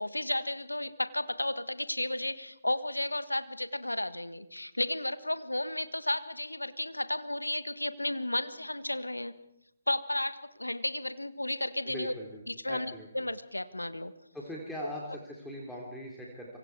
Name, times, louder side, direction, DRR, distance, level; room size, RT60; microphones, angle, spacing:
voice 1, 0.0-9.3 9.9-12.1 12.5-14.1, left 1 dB, 85° left, 13 dB, 1.4 m, -33 dB
voice 2, 11.9-13.1 14.3-16.6, equal, 5° left, -3 dB, 3.1 m, -41 dB
26.5 x 24.5 x 4.7 m, 0.81 s
figure-of-eight pair, 140°, 0 cm